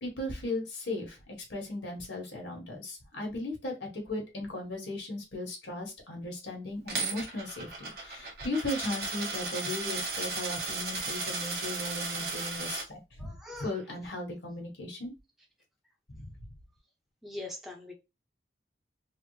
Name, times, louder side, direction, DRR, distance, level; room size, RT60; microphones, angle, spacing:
voice 1, 0.0-1.2 1.5-13.3 13.6-15.1 16.1-16.3, left 2 dB, 75° left, 1.4 m, -37 dB
Coin (dropping), 6.9-12.8, right 3 dB, 50° right, 1.2 m, -35 dB
voice 2, 13.2-13.7 17.2-17.9, left 2 dB, ahead, 0.7 m, -42 dB
3.4 x 2.1 x 3.1 m
head